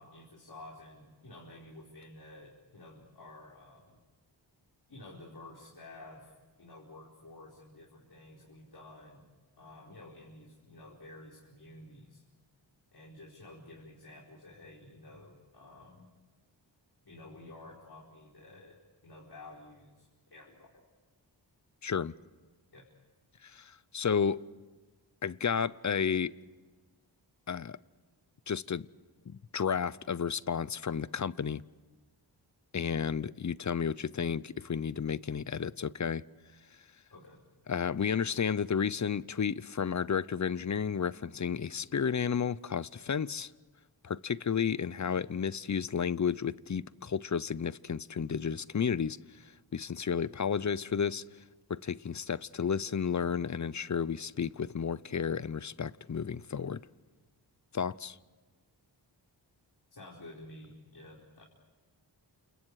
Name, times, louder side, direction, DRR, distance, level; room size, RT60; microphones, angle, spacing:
voice 1, 0.0-4.0 4.9-6.3 6.6-9.3 9.6-12.2 12.9-16.1 17.0-20.7 22.7-22.9 37.1-37.4 59.9-61.4, left 2 dB, 55° left, 4.8 m, -51 dB
voice 2, 21.8-22.1 23.4-24.4 25.2-26.3 27.5-27.8 28.5-28.9 29.3-31.6 32.7-36.2 37.7-43.5 44.0-49.2 49.7-51.2 51.7-56.8 57.7-58.2, left 7 dB, 40° left, 0.7 m, -32 dB
29.0 x 28.0 x 4.9 m
cardioid pair, 55°, 44 cm